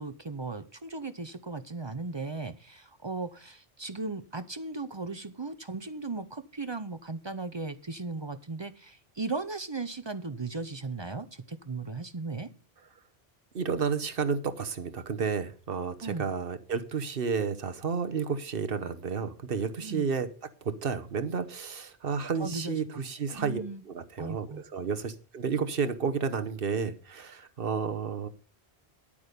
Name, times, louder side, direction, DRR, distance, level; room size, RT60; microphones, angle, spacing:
voice 1, 0.0-12.5 16.0-16.3 19.8-20.1 22.4-23.0 23.3-23.8 24.2-24.6, right 3 dB, 30° right, 12 dB, 0.7 m, -37 dB
voice 2, 13.5-20.3 20.6-28.3, right 6 dB, 60° right, 10 dB, 1.2 m, -31 dB
10.0 x 8.7 x 5.1 m, 0.39 s
omnidirectional pair, 1.1 m